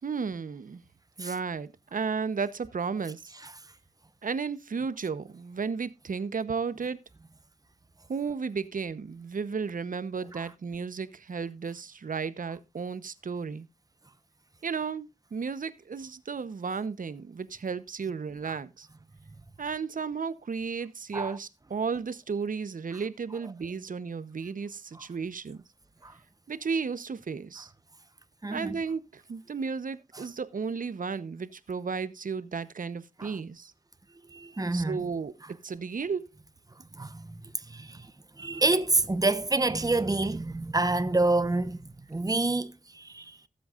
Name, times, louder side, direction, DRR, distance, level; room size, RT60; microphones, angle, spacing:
voice 1, 0.0-0.8 1.2-3.3 4.2-7.0 8.1-13.7 14.6-18.9 19.6-25.6 26.5-27.7 28.5-33.7 34.7-36.3, right 5 dB, 70° right, 0.9 m, -34 dB
voice 2, 28.4-28.8 33.2-33.3 34.3-35.0 36.9-38.1 38.4-43.4, right 2 dB, 25° right, 1.0 m, -28 dB
18.5 x 7.8 x 2.5 m
wide cardioid pair, 65°, 15 cm